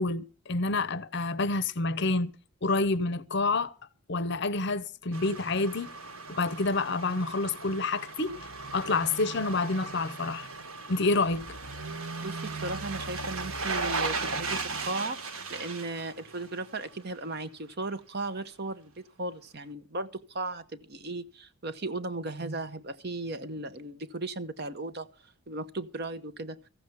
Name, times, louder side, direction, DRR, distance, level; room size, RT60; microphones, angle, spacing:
voice 1, 0.0-2.3 2.6-3.7 4.1-5.9 6.3-8.4 8.7-10.5 10.9-11.5, left 3 dB, 55° left, 0.8 m, -28 dB
sound 1, 5.1-17.0 17.3-17.4, right 3 dB, 80° right, 1.6 m, -37 dB
voice 2, 12.2-15.2 15.5-25.1 25.5-26.6, right 2 dB, 50° right, 0.9 m, -36 dB
14.5 x 7.1 x 7.9 m
head